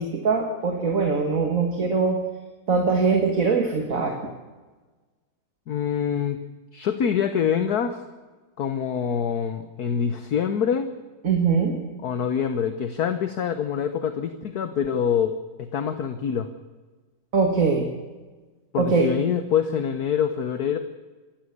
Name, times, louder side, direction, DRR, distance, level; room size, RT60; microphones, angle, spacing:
voice 1, 0.0-2.2 2.7-4.2 11.2-11.8 17.3-17.9 18.8-19.1, right 4 dB, 40° right, 3 dB, 2.2 m, -22 dB
voice 2, 5.7-6.4 6.7-8.0 8.6-10.9 12.0-16.5 18.7-20.8, left 8 dB, 55° left, 9 dB, 1.4 m, -25 dB
27.0 x 13.0 x 8.2 m, 1.3 s
omnidirectional pair, 2.2 m